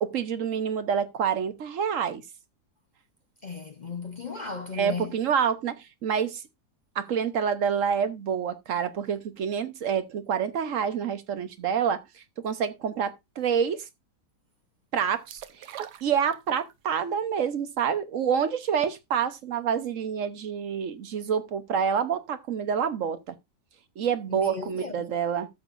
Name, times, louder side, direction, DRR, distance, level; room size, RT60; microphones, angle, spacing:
voice 1, 0.0-2.2 4.7-6.4 6.9-13.9 14.9-23.4 24.0-25.5, right 7 dB, 55° right, 1.1 m, -27 dB
voice 2, 3.4-5.1 24.3-25.1, left 5 dB, 50° left, 0.5 m, -36 dB
sound 1, 15.3-16.8 17.2-17.3, right 10 dB, 85° right, 1.4 m, -41 dB
13.5 x 6.6 x 2.5 m
omnidirectional pair, 1.7 m